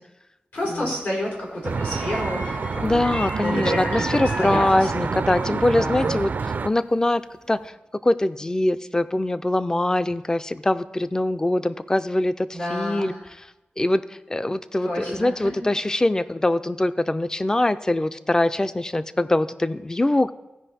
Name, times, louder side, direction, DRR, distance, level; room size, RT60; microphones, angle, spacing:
voice 1, 0.5-6.2 12.5-13.2 14.8-15.5, left 1 dB, 80° left, -2 dB, 4.0 m, -30 dB
sound 1, 0.5-0.9 1.7-5.7 6.1-7.0 7.4-7.7, left 2 dB, 45° left, 1.5 m, -36 dB
Traffic noise roadway noise, 1.6-6.7, right 4 dB, 55° right, 0.4 m, -27 dB
voice 2, 2.8-7.2 7.5-7.7 8.0-13.1 13.8-14.0 14.3-20.3, left 1 dB, 20° left, 13 dB, 0.4 m, -23 dB
15.5 x 5.2 x 4.2 m, 1.0 s
wide cardioid pair, 85°, 4 cm